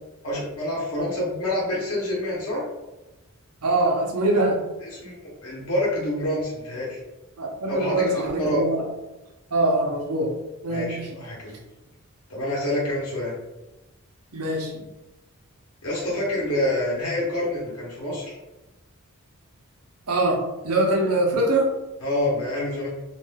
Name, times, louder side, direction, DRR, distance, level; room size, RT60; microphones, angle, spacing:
voice 1, 0.2-2.6 4.8-7.0 7.7-8.6 10.7-11.6 12.3-13.3 15.8-18.4 22.0-22.9, left 1 dB, 70° left, -4 dB, 0.9 m, -27 dB
voice 2, 3.6-4.6 7.4-8.8 9.5-10.3 10.6-11.1 14.3-14.8 20.1-20.4 20.6-21.7, right 2 dB, 85° right, 0 dB, 0.7 m, -23 dB
2.5 x 2.2 x 3.3 m, 1.0 s
head